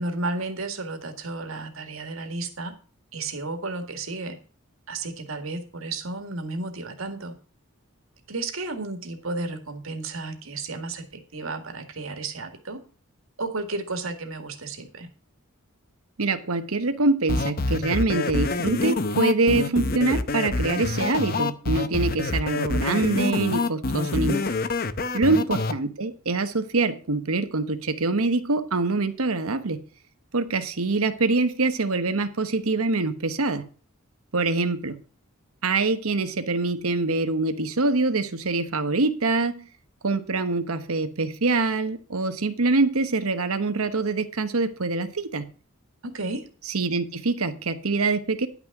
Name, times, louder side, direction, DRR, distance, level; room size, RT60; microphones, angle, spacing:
voice 1, 0.0-2.8 3.1-4.4 4.9-7.3 8.3-12.8 13.4-15.1 25.2-25.4 46.0-46.5, right 3 dB, 70° right, 6 dB, 1.9 m, -33 dB
voice 2, 16.2-24.4 25.1-29.8 30.3-33.6 34.3-35.0 35.6-39.7 40.0-45.5 46.7-48.5, right 3 dB, 90° right, 9 dB, 1.2 m, -24 dB
sound 1, 17.3-25.7, left 3 dB, 45° left, 0.7 m, -26 dB
11.0 x 6.2 x 6.0 m, 0.38 s
head